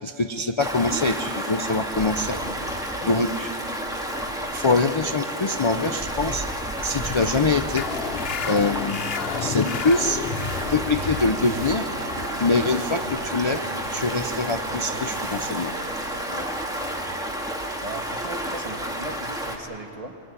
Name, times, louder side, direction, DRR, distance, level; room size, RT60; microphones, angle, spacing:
voice 1, 0.0-2.4 3.0-3.5 4.5-6.5 6.8-7.9 8.4-9.0 9.3-11.9 12.4-13.7 13.9-15.8, left 3 dB, 35° left, 8 dB, 0.5 m, -24 dB
Stream, 0.6-19.6, equal, 5° right, 2.3 m, -31 dB
sound 1, 7.8-14.9, left 7 dB, 55° left, 0.9 m, -33 dB
sound 2, 10.4-16.2, right 6 dB, 75° right, 1.2 m, -38 dB
voice 2, 16.8-17.2 17.8-20.1, right 2 dB, 30° right, 4 dB, 1.7 m, -37 dB
24.0 x 21.5 x 9.8 m, 2.9 s
omnidirectional pair, 1.3 m